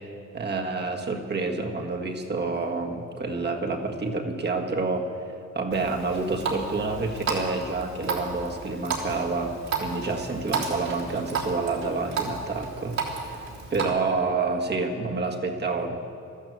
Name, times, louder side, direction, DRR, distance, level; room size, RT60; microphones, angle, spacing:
voice 1, 0.3-9.5 9.8-16.0, right 3 dB, 35° right, 2 dB, 1.7 m, -28 dB
Water tap faucet, 5.7-13.9, right 4 dB, 65° right, 3.4 m, -33 dB
13.0 x 12.0 x 7.9 m, 2.5 s
cardioid pair, 90°, 30 cm